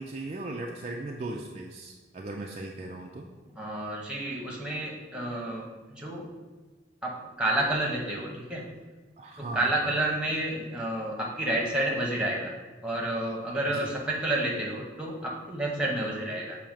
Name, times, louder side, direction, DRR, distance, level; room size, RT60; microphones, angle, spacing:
voice 1, 0.0-3.3 9.2-10.0 10.3-10.4 13.7-14.0, right 2 dB, 35° right, 0 dB, 0.4 m, -38 dB
voice 2, 3.5-6.3 7.0-8.6 9.4-12.5 12.8-16.6, right 1 dB, 5° right, -2 dB, 0.9 m, -30 dB
7.0 x 2.8 x 5.2 m, 1.3 s
head